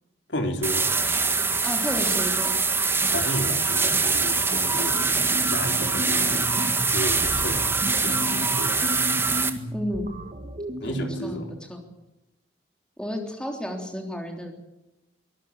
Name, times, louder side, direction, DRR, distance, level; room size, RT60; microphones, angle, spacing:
voice 1, 0.3-0.9 3.1-5.1 5.5-6.5 6.9-7.7 8.0-8.8 10.8-11.5, equal, 70° left, 4 dB, 3.9 m, -32 dB
sound 1, 0.6-9.5, right 4 dB, 10° right, 1.8 m, -24 dB
voice 2, 1.6-2.5 9.7-10.1 10.8-11.8 13.0-14.5, equal, 5° left, 2 dB, 3.4 m, -32 dB
sound 2, 4.5-11.6, equal, 35° right, 2.1 m, -34 dB
24.5 x 20.0 x 7.3 m, 0.95 s
head